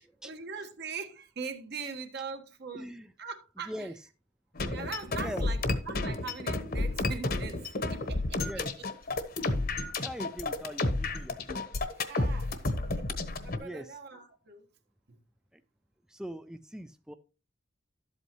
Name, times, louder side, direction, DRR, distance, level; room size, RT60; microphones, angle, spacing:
voice 1, 0.0-2.9 3.2-3.9 4.7-8.8 11.9-12.6 13.1-14.7 15.1-15.2, right 5 dB, 60° right, 1.4 m, -42 dB
voice 2, 2.7-3.1 3.7-3.9 5.1-5.4 8.4-8.7 10.0-11.6 13.6-14.0 15.5-15.6 16.1-17.1, equal, 5° right, 0.4 m, -41 dB
sound 1, 4.6-13.6, left 2 dB, 50° left, 1.1 m, -31 dB
12.0 x 8.1 x 3.0 m
head